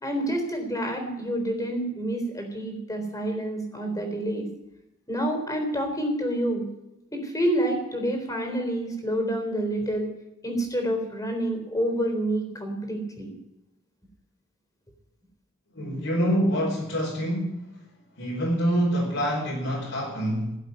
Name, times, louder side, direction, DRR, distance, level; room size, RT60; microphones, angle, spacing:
voice 1, 0.0-4.5 5.1-6.7 7.1-10.1 10.4-13.3, right 1 dB, 15° left, 4 dB, 3.8 m, -28 dB
voice 2, 15.7-17.6 18.2-20.6, equal, 70° left, -4 dB, 5.1 m, -26 dB
17.0 x 8.0 x 9.6 m, 0.89 s
head